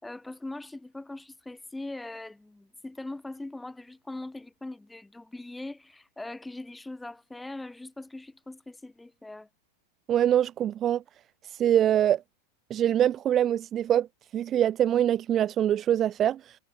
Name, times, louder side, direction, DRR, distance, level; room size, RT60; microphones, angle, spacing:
voice 1, 0.0-9.5, left 2 dB, 5° left, 4.4 m, -41 dB
voice 2, 10.1-11.0 11.4-12.2 12.7-14.1 14.3-16.6, right 10 dB, 30° right, 0.5 m, -24 dB
figure-of-eight pair, 90°, 0 cm